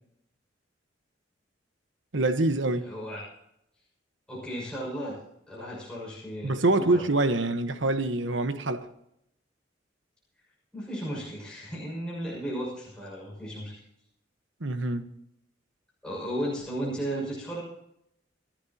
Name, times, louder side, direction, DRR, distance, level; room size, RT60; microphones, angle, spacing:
voice 1, 2.1-2.9 6.4-8.9 14.6-15.1, right 2 dB, 85° right, 1.2 m, -25 dB
voice 2, 2.8-3.2 4.3-5.2 5.5-7.0 10.7-13.7 16.0-17.6, equal, 5° left, 6.3 m, -34 dB
28.5 x 12.0 x 2.9 m
head